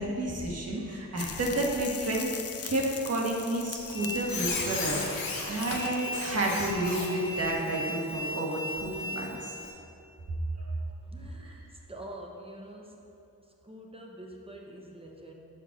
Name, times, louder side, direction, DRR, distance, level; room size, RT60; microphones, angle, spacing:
voice 1, 0.0-2.3 2.6-9.6 10.6-10.7 11.4-11.5, right 1 dB, 45° right, -2 dB, 1.5 m, -31 dB
sound 1, 1.2-6.1, left 7 dB, 45° left, 0.5 m, -41 dB
Squeak, 3.7-9.7, left 2 dB, 75° left, 1.2 m, -35 dB
voice 2, 11.1-13.0 13.6-15.3, right 1 dB, 15° right, 0 dB, 1.0 m, -45 dB
5.4 x 5.1 x 6.0 m, 2.8 s
cardioid pair, 80°, 35 cm